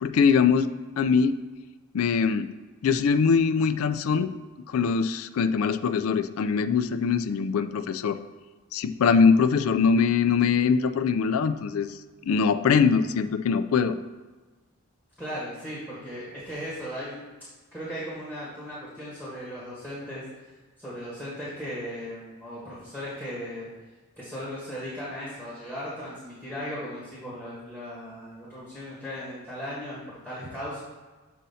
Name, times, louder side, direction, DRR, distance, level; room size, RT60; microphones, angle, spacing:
voice 1, 0.0-0.7 1.0-1.3 1.9-2.5 2.8-4.3 4.7-8.2 8.7-11.9 12.3-14.0, left 5 dB, 75° left, 10 dB, 0.4 m, -22 dB
voice 2, 15.2-17.2 17.7-20.2 20.8-23.7 24.2-30.8, equal, 5° right, -10 dB, 1.5 m, -37 dB
7.3 x 2.8 x 5.5 m, 1.3 s
head